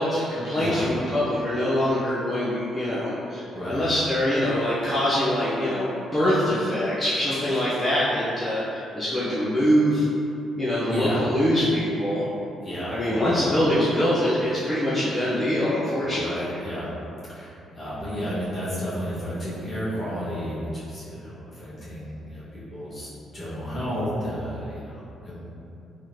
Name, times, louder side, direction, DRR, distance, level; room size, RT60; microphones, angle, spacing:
voice 1, 0.0-10.1 10.6-12.3 12.9-16.6, equal, 10° left, -11 dB, 0.8 m, -24 dB
voice 2, 0.5-0.9 3.5-3.9 10.9-11.3 12.6-13.3 16.0-16.9 17.3-25.5, equal, 35° left, -10 dB, 1.5 m, -32 dB
3.6 x 3.2 x 2.8 m, 2.7 s
cardioid pair, 90°, 0 cm